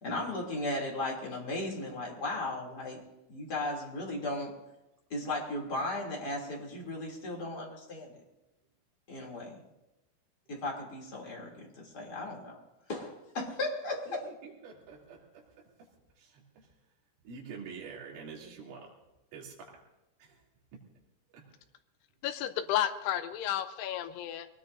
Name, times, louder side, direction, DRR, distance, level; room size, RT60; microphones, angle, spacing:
voice 1, 0.0-3.0 3.3-4.5 5.1-8.1 9.1-9.6 10.5-12.6 12.9-14.3, left 2 dB, 25° left, -1 dB, 2.5 m, -36 dB
voice 2, 14.1-15.4 16.2-16.7 17.3-18.9 19.3-19.8 20.2-20.4 21.3-21.4, right 5 dB, 80° right, -3 dB, 5.4 m, -47 dB
voice 3, 22.2-24.5, left 11 dB, 85° left, 8 dB, 2.4 m, -32 dB
24.0 x 19.5 x 2.6 m, 0.98 s
omnidirectional pair, 5.6 m